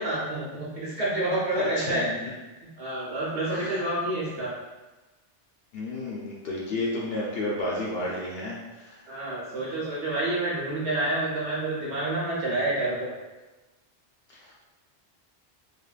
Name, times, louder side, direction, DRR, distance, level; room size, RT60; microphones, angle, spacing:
voice 1, 0.0-2.1 2.8-4.5 9.1-13.1, right 1 dB, 75° right, -7 dB, 1.0 m, -28 dB
voice 2, 1.6-2.2 3.5-3.8 5.7-9.0 14.3-14.5, left 1 dB, 65° left, -5 dB, 0.7 m, -31 dB
3.3 x 2.2 x 2.3 m, 1.1 s
omnidirectional pair, 1.2 m